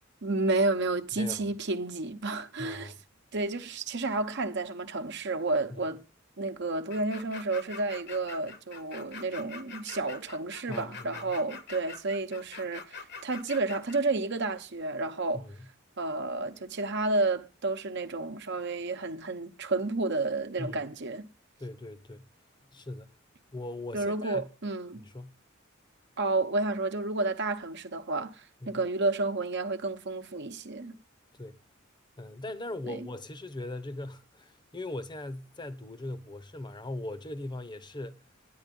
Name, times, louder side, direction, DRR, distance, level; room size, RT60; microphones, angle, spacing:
voice 1, 0.2-2.9 3.3-6.0 6.4-15.4 16.0-21.3 23.9-25.0 26.2-31.0 32.9-33.1, right 3 dB, 60° right, 1.0 m, -31 dB
voice 2, 2.6-3.0 5.7-5.9 10.7-11.3 15.3-15.6 20.6-20.8 21.6-22.3 22.7-23.1 23.5-24.5 24.9-25.3 28.6-28.8 31.3-31.6 32.2-38.2, left 1 dB, 20° left, 0.8 m, -40 dB
sound 1, 6.9-14.0, left 5 dB, 55° left, 1.1 m, -44 dB
10.5 x 9.3 x 5.3 m
head